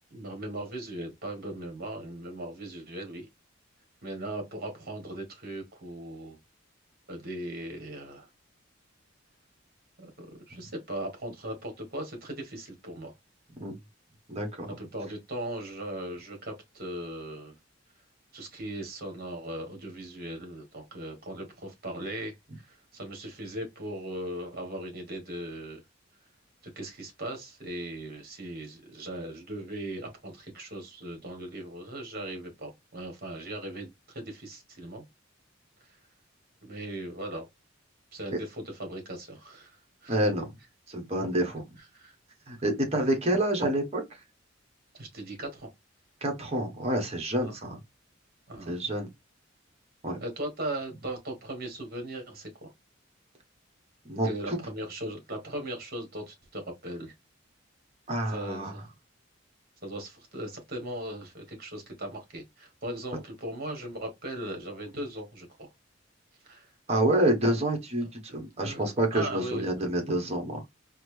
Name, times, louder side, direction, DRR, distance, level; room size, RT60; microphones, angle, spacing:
voice 1, 0.1-3.3 4.0-6.4 7.1-8.3 10.0-13.1 14.8-17.5 18.3-25.8 26.7-35.0 36.6-37.4 38.1-39.7 40.0-40.2 41.9-42.1 44.9-45.7 47.4-47.5 48.5-48.7 50.2-52.7 54.2-57.1 58.3-58.8 59.8-65.7 66.5-66.7 68.0-69.7, right 1 dB, 50° right, 1.3 m, -38 dB
voice 2, 14.3-14.7 38.3-38.4 40.1-40.5 40.9-41.8 42.5-44.0 46.2-47.8 48.7-49.1 50.0-50.2 54.0-54.6 58.1-58.7 66.9-70.6, right 1 dB, 30° right, 1.1 m, -28 dB
4.0 x 2.0 x 3.2 m
head